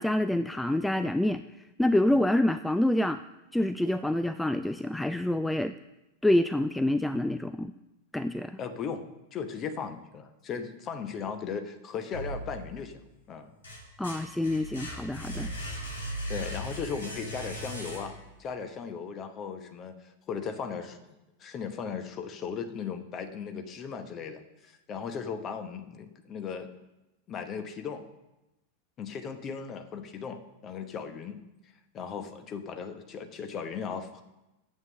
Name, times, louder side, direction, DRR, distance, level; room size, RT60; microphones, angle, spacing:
voice 1, 0.0-1.4 1.8-3.2 3.5-5.7 6.2-7.7 8.1-8.6 14.0-15.5, left 1 dB, 5° left, 11 dB, 0.3 m, -27 dB
voice 2, 8.6-9.0 9.3-13.0 13.3-13.5 15.3-15.6 16.3-26.7 27.3-28.1 29.0-31.4 31.9-34.2, left 6 dB, 30° left, 8 dB, 1.1 m, -37 dB
sound 1, 12.1-12.9 13.4-18.4, right 1 dB, 70° left, 3.0 m, -38 dB
9.5 x 7.7 x 6.7 m, 0.99 s
figure-of-eight pair, 90°, 0 cm